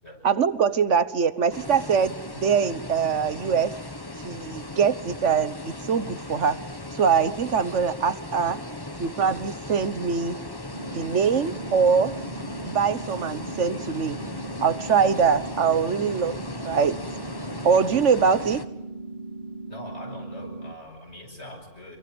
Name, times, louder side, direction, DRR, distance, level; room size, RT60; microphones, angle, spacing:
voice 1, 0.2-3.7 4.2-6.6 6.9-8.6 9.0-10.4 10.9-12.2 12.7-14.2 14.6-16.4 16.6-17.0 17.6-18.6, right 6 dB, 75° right, 14 dB, 1.6 m, -23 dB
sound 1, 1.5-18.6, left 2 dB, 20° left, 1.6 m, -37 dB
sound 2, 10.7-20.7, right 2 dB, 45° right, 2.5 m, -38 dB
voice 2, 19.7-22.0, left 1 dB, 60° left, 2 dB, 8.3 m, -42 dB
29.0 x 23.0 x 8.0 m, 0.94 s
omnidirectional pair, 1.2 m